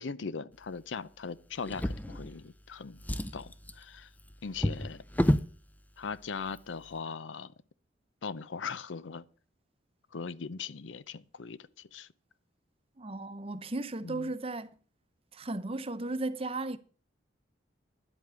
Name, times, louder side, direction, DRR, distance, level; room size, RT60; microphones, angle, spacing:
voice 1, 0.0-3.0 3.3-4.1 4.4-5.0 6.0-7.5 8.2-9.2 10.1-12.1 14.0-14.3, left 5 dB, 80° left, 0.6 m, -40 dB
Drawer open or close, 1.6-2.6 2.9-5.6 6.4-6.6 7.0-7.1, equal, 10° left, 0.5 m, -31 dB
voice 2, 13.0-14.7 15.3-16.8, right 2 dB, 30° right, 0.7 m, -35 dB
10.5 x 8.2 x 6.8 m
head